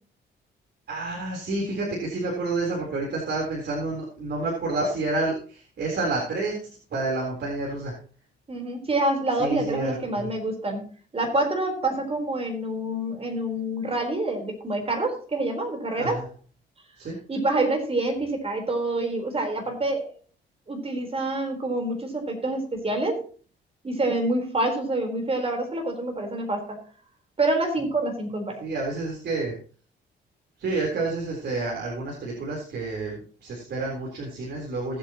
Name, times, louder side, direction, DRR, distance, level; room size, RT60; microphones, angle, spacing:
voice 1, 0.9-6.6 6.9-7.9 9.4-10.0 16.0-16.2 17.0-17.1 28.6-29.5 30.6-35.0, right 3 dB, 60° right, -2 dB, 3.9 m, -29 dB
voice 2, 8.5-10.9 11.1-16.2 17.3-20.1 20.7-23.2 23.8-26.8 27.4-28.6, right 2 dB, 30° right, 4 dB, 4.2 m, -27 dB
19.0 x 8.2 x 3.0 m, 0.40 s
cardioid pair, 90°, 20 cm